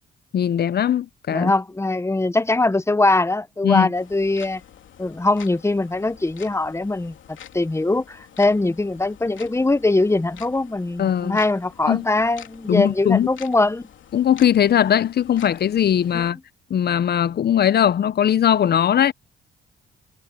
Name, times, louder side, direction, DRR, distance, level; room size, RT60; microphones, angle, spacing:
voice 1, 0.3-1.5 3.6-3.9 11.0-11.4 11.9-12.0 12.7-13.3 14.1-16.4 16.7-19.1, left 9 dB, 55° left, 0.7 m, -19 dB
voice 2, 1.3-4.6 5.0-7.1 7.5-13.8 16.1-16.3, left 2 dB, 15° left, 1.0 m, -21 dB
sound 1, 3.9-16.3, left 10 dB, 75° left, 2.9 m, -47 dB
cardioid pair, 70°, 20 cm